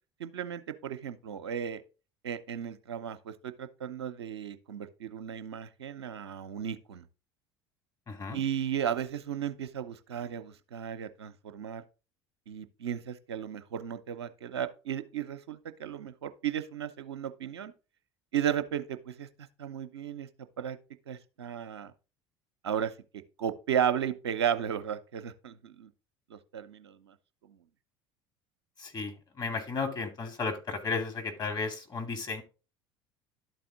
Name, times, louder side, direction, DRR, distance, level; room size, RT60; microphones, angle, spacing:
voice 1, 0.2-1.8 2.2-7.0 8.3-11.8 12.5-17.7 18.3-19.3 19.6-20.3 20.6-20.8 21.1-21.9 22.6-22.9 23.4-25.9 26.3-27.1, right 9 dB, 85° right, 0.7 m, -34 dB
voice 2, 8.1-8.4 28.8-32.4, left 4 dB, 30° left, 2.5 m, -34 dB
11.5 x 4.2 x 3.8 m
hypercardioid pair, 65°, 14 cm